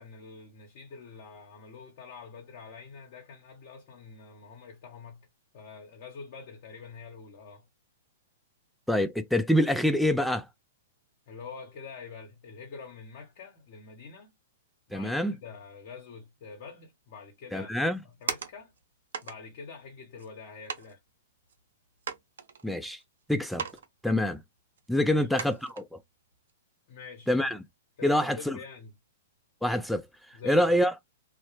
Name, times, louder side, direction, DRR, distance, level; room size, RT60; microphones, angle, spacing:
voice 1, 0.0-5.3 5.5-7.7 11.3-14.3 14.9-18.7 19.2-21.0 25.1-25.2 26.9-27.3 28.0-28.9 30.3-30.8, left 5 dB, 50° left, 0.8 m, -46 dB
voice 2, 8.9-10.5 14.9-15.3 17.5-18.0 22.6-23.0 23.3-23.6 24.0-24.4 24.9-26.0 27.3-27.6 28.0-28.6 29.6-30.1 30.4-30.9, left 1 dB, ahead, 0.4 m, -25 dB
sound 1, 17.8-18.8 19.1-19.4 20.2-20.3 20.7-20.9 21.5-21.6 22.0-23.0 23.5-23.9 24.1-24.2 24.8-24.9 25.4-25.8 26.3-26.5, right 6 dB, 70° right, 0.5 m, -37 dB
2.2 x 2.0 x 2.9 m
hypercardioid pair, 120°, 0 cm